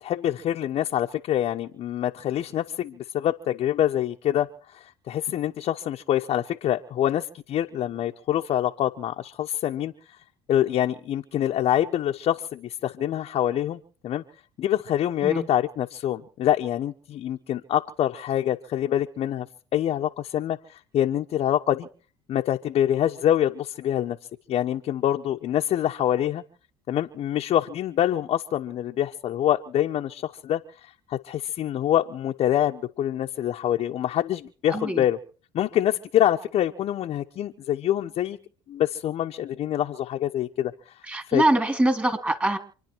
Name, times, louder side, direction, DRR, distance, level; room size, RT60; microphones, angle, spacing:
voice 1, 0.0-4.5 4.7-9.9 10.5-14.2 14.6-19.5 19.7-20.6 20.9-21.9 22.3-24.2 24.5-26.4 26.9-35.2 35.5-38.4 38.7-40.7 41.3-41.4, left 11 dB, 55° left, 2 dB, 1.1 m, -25 dB
voice 2, 34.7-35.0 41.0-42.6, right 1 dB, 10° right, 7 dB, 3.4 m, -23 dB
28.0 x 10.0 x 4.7 m, 0.41 s
supercardioid pair, 80°, 12 cm